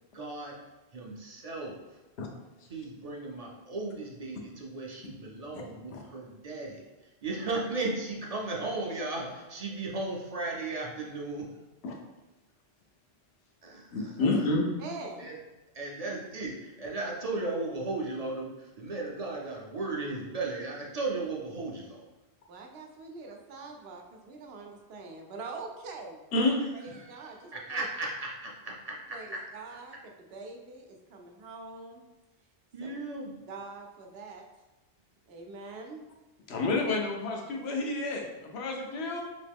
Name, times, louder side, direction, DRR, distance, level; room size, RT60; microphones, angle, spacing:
voice 1, 0.1-0.6 0.9-2.0 2.7-11.6 13.6-14.4 15.2-15.4 15.7-22.1 26.8-29.5 32.7-33.4, right 2 dB, 50° right, -1 dB, 0.5 m, -36 dB
voice 2, 13.9-14.7 26.3-26.6 36.5-39.2, left 2 dB, 90° left, 1 dB, 0.9 m, -29 dB
voice 3, 14.8-15.4 22.5-26.2 26.8-27.8 29.1-29.3 29.5-29.9 30.3-32.0 32.8-33.0 33.5-34.4 35.3-36.0, right 3 dB, 80° right, 2 dB, 0.8 m, -44 dB
3.0 x 2.9 x 3.5 m, 1.1 s
omnidirectional pair, 1.0 m